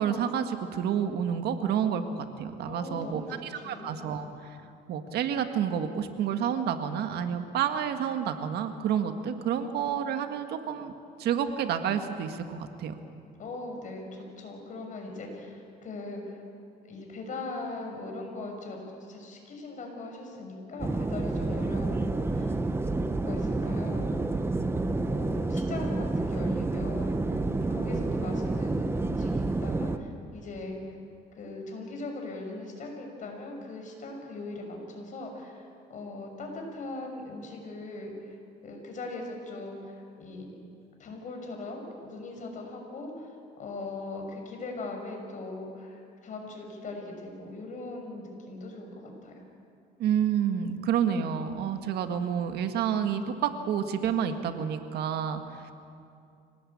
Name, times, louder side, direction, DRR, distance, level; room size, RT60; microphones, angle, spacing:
voice 1, 0.0-3.2 3.6-4.6 4.9-10.9 11.2-13.0 50.0-55.7, right 8 dB, 75° right, 7 dB, 1.8 m, -29 dB
voice 2, 2.6-4.1 13.4-16.4 16.8-22.6 23.1-24.4 25.0-27.3 27.7-31.0 31.3-40.5 41.0-49.4, left 2 dB, 50° left, 2 dB, 6.3 m, -40 dB
sound 1, 20.8-30.0, right 2 dB, 15° right, 1.1 m, -29 dB
25.5 x 18.5 x 8.7 m, 2.5 s
cardioid pair, 110°, 17 cm